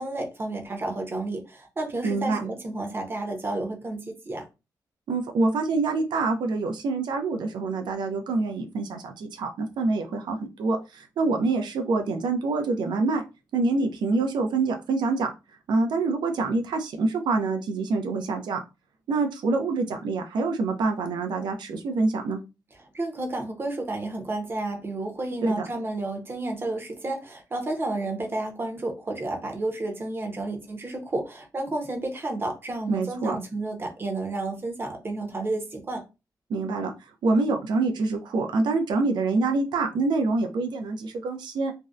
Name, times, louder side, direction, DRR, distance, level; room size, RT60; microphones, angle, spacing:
voice 1, 0.0-4.5 22.9-36.0, right 2 dB, 30° right, 0.6 m, -31 dB
voice 2, 2.0-2.4 5.1-13.2 13.5-15.3 15.7-18.6 19.1-22.4 25.4-25.7 32.9-33.4 36.5-36.9 37.2-41.7, right 3 dB, 85° right, 0.5 m, -26 dB
2.6 x 2.0 x 2.3 m
wide cardioid pair, 120°, 7 cm